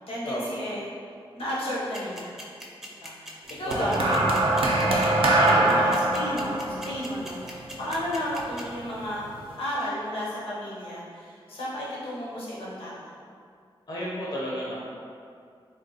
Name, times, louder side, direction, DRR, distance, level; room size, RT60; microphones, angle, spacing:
voice 1, 0.1-0.8 1.4-2.3 3.0-4.3 5.6-9.3 9.6-13.1, equal, 85° left, -7 dB, 0.8 m, -33 dB
sound 1, 1.9-8.6, right 1 dB, 5° right, 0.4 m, -40 dB
sound 2, 3.7-8.1 9.1-9.3, right 2 dB, 70° right, 0.4 m, -23 dB
voice 2, 3.8-4.2 5.4-5.8 13.9-14.8, equal, 45° left, -6 dB, 0.5 m, -31 dB
3.4 x 2.2 x 2.7 m, 2.3 s
wide cardioid pair, 90°, 9 cm